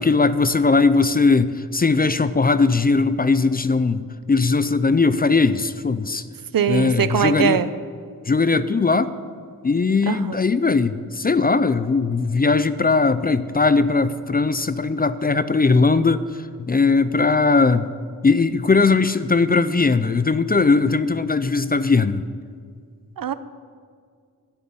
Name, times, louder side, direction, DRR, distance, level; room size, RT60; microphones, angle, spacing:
voice 1, 0.0-6.2 6.7-7.6 8.3-9.1 9.6-16.2 16.6-17.9 18.2-22.3, left 4 dB, 25° left, 13 dB, 0.4 m, -19 dB
voice 2, 6.5-7.7 10.1-10.4 23.2-23.3, right 8 dB, 70° right, 13 dB, 0.7 m, -21 dB
12.5 x 7.1 x 9.6 m, 2.1 s
wide cardioid pair, 105°, 36 cm